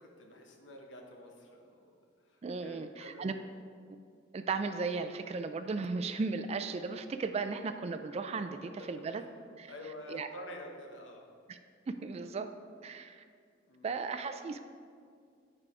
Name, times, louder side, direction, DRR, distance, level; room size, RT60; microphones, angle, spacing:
voice 1, 0.0-1.9 2.2-3.4 8.6-9.2 9.7-11.2 13.7-13.9, left 1 dB, 75° left, 2 dB, 1.1 m, -48 dB
voice 2, 2.4-3.3 4.3-9.2 9.6-9.7 10.1-10.3 11.5-11.6 11.9-12.5 12.8-13.2 13.8-14.6, right 4 dB, 35° right, 8 dB, 0.3 m, -36 dB
8.9 x 4.8 x 4.8 m, 2.2 s
head